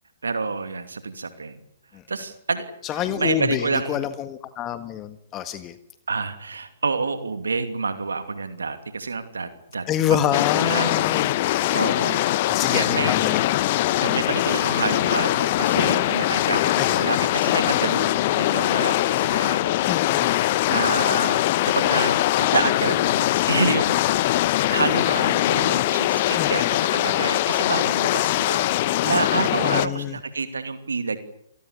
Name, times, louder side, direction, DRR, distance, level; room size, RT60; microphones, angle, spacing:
voice 1, 0.2-1.6 2.1-2.7 3.0-4.0 6.1-11.1 11.7-13.1 14.0-20.0 20.3-28.7 29.0-31.2, right 4 dB, 80° right, 10 dB, 2.7 m, -28 dB
voice 2, 2.8-5.7 9.9-11.4 12.5-13.7 16.8-17.1 19.9-20.4 26.4-26.7 29.6-30.2, left 11 dB, 25° left, 11 dB, 1.6 m, -27 dB
sound 1, 10.3-29.9, left 15 dB, 45° left, 1.0 m, -22 dB
27.5 x 18.5 x 8.6 m, 0.72 s
figure-of-eight pair, 125°, 0 cm